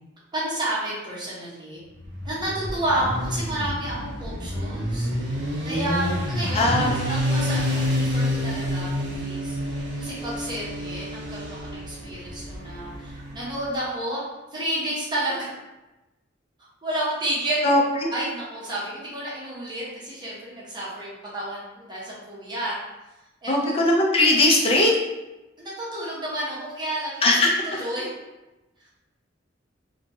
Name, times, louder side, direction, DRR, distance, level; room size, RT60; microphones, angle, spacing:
voice 1, 0.3-1.8 2.2-5.1 5.6-14.2 14.5-15.5 16.8-17.7 18.1-22.7 23.4-23.9 25.6-28.1 28.8-28.9, right 1 dB, 25° right, -7 dB, 0.8 m, -31 dB
Motorcycle, 2.0-13.7, equal, 65° right, 0.7 m, -28 dB
voice 2, 6.5-7.0 17.6-18.1 23.5-24.9 27.2-27.5, left 1 dB, 30° left, -1 dB, 0.5 m, -19 dB
2.9 x 2.3 x 2.6 m, 1.0 s
head